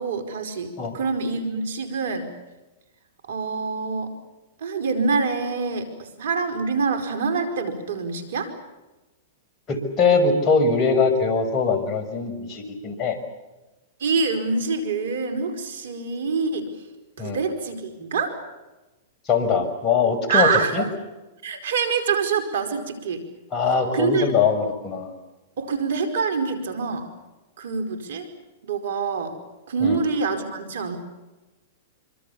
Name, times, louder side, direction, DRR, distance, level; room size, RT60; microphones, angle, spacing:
voice 1, 0.0-2.3 3.3-4.1 4.6-8.5 14.0-16.7 17.2-18.3 20.3-20.9 21.4-23.2 23.9-24.3 25.6-27.1 27.6-28.3 28.6-29.4 29.7-31.0, right 4 dB, 70° right, 8 dB, 4.9 m, -25 dB
voice 2, 9.7-13.2 17.2-17.4 19.3-20.8 23.5-25.1 29.8-30.0, left 4 dB, 30° left, 4 dB, 6.3 m, -22 dB
27.0 x 25.5 x 7.2 m, 1.1 s
hypercardioid pair, 115°, 0 cm